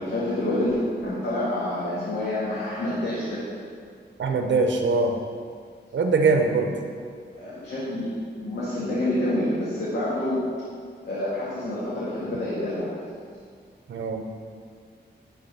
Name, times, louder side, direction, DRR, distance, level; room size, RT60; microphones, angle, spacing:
voice 1, 0.0-3.5 7.3-10.4 11.0-13.0, left 1 dB, 85° left, -9 dB, 1.9 m, -27 dB
voice 2, 4.2-5.2 5.9-6.8 13.9-14.2, right 4 dB, 90° right, 4 dB, 0.8 m, -22 dB
10.5 x 4.2 x 5.4 m, 2.1 s
wide cardioid pair, 130°, 19 cm